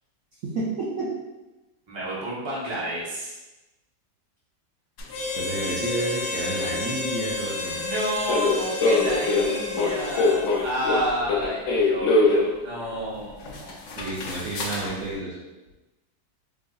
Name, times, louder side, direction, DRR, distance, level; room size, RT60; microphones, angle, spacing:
voice 1, 0.4-1.1 5.4-7.8 14.0-15.4, right 2 dB, 70° right, -7 dB, 0.8 m, -30 dB
voice 2, 1.9-3.3 7.7-13.8, right 1 dB, 30° right, -7 dB, 0.5 m, -30 dB
sound 1, 5.0-5.1 8.3-12.5 13.1-13.2 13.5-14.9, left 3 dB, 90° left, 0.6 m, -23 dB
Harmonica, 5.1-10.7, left 3 dB, 70° left, 1.1 m, -31 dB
4.7 x 2.6 x 2.3 m, 1.1 s
omnidirectional pair, 2.0 m